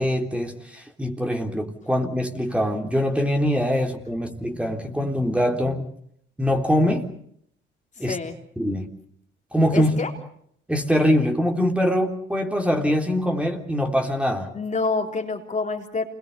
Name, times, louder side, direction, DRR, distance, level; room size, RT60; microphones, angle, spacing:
voice 1, 0.0-5.9 6.4-7.1 8.0-8.2 8.6-8.9 9.5-10.0 10.7-14.5, equal, 5° right, 3.4 m, -23 dB
voice 2, 8.0-8.4 9.7-10.1 14.5-16.0, left 3 dB, 40° left, 3.8 m, -27 dB
27.5 x 22.0 x 7.0 m
cardioid pair, 90°, 20 cm